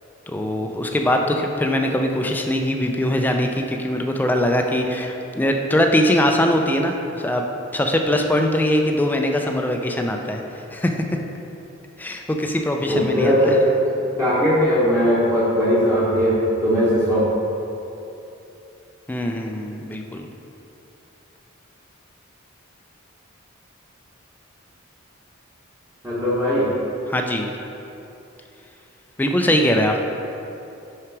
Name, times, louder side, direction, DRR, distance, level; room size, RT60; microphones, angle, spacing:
voice 1, 0.3-7.4 7.7-10.4 10.7-10.9 12.0-13.6 19.1-20.3 27.1-27.5 29.2-30.0, left 1 dB, 10° left, 3 dB, 0.4 m, -21 dB
voice 2, 12.9-13.6 14.2-16.4 16.6-17.2 26.0-26.7, equal, 15° right, -9 dB, 1.0 m, -19 dB
5.8 x 4.9 x 4.6 m, 2.9 s
head